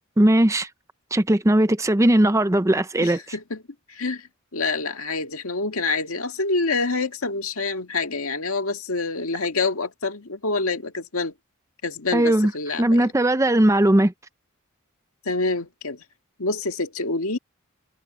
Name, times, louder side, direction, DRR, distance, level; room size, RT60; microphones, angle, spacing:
voice 1, 0.2-0.7 1.1-3.2 12.1-12.5 12.8-14.1, right 1 dB, 15° right, 0.6 m, -18 dB
voice 2, 3.0-3.6 3.9-11.3 11.8-13.1 15.2-16.0 16.4-17.4, left 3 dB, 85° left, 1.8 m, -27 dB
head